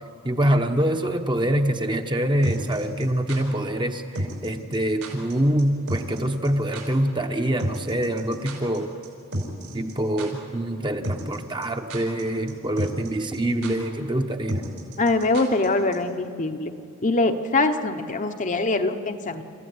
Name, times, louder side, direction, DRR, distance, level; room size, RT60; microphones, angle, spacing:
voice 1, 0.2-8.9 9.7-14.6, right 1 dB, 20° right, 5 dB, 1.1 m, -25 dB
sound 1, 2.4-3.4 4.2-4.5 4.7-4.8 5.0-5.3 5.6-5.7 5.9-6.2 6.4-6.5 6.7-6.8 7.6-8.8 9.0-9.1 9.3-9.9 10.2-10.3 11.0-11.4 11.6-12.2 12.5-12.6 12.8-13.1 13.3-13.4 13.6-13.7 14.5-15.7 15.9-16.0, right 1 dB, 75° right, 5.3 m, -30 dB
voice 2, 15.0-16.7 17.0-19.4, left 2 dB, 35° left, 6 dB, 1.0 m, -23 dB
29.5 x 14.5 x 9.6 m, 2.4 s
head